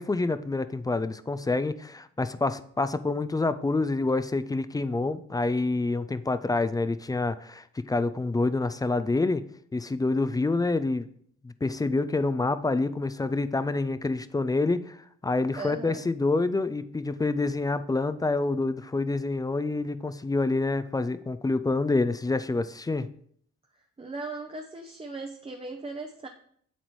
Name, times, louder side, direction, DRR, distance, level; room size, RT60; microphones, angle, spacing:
voice 1, 0.0-9.4 9.7-11.1 11.4-23.1, left 3 dB, 15° left, 13 dB, 0.4 m, -27 dB
voice 2, 15.6-16.1 24.0-26.3, right 3 dB, 20° right, 3 dB, 0.7 m, -38 dB
8.2 x 7.6 x 3.1 m, 0.63 s
cardioid pair, 90°, 30 cm